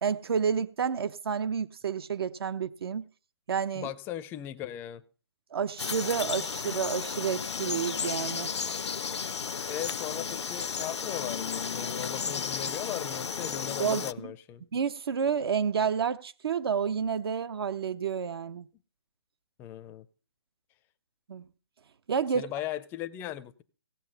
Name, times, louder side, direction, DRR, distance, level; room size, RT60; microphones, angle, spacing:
voice 1, 0.0-3.1 3.5-3.9 5.5-8.5 13.8-14.1 14.7-18.6 21.3-21.5 22.1-22.4, right 7 dB, 60° right, 0.7 m, -30 dB
voice 2, 3.7-5.0 9.7-14.6 19.6-20.1 22.3-23.6, left 12 dB, 15° left, 0.5 m, -38 dB
Frog, 5.8-14.1, left 6 dB, 80° left, 0.6 m, -33 dB
16.5 x 7.2 x 5.6 m
hypercardioid pair, 145°, 14 cm